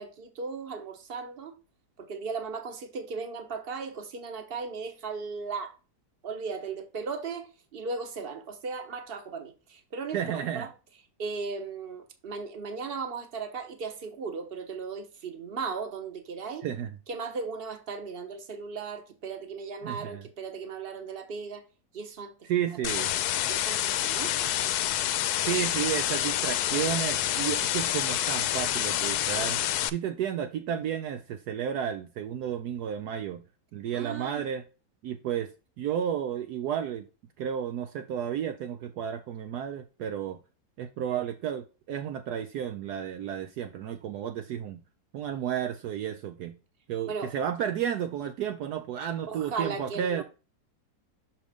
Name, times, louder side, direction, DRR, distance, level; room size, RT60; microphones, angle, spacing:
voice 1, 0.0-1.5 2.0-5.7 6.2-10.7 11.2-16.7 17.1-21.6 21.9-22.5 23.5-24.4 33.9-34.4 47.1-47.3 49.3-50.2, right 4 dB, 40° right, 1.2 m, -37 dB
voice 2, 10.1-10.7 16.6-17.0 19.8-20.2 22.5-23.1 25.4-33.4 33.7-34.6 35.0-35.5 35.8-37.1 37.4-40.4 40.8-44.8 45.1-46.6 46.9-50.2, right 9 dB, 70° right, 1.1 m, -32 dB
sound 1, 22.8-29.9, left 12 dB, 75° left, 1.0 m, -28 dB
6.3 x 5.1 x 3.5 m
omnidirectional pair, 1.8 m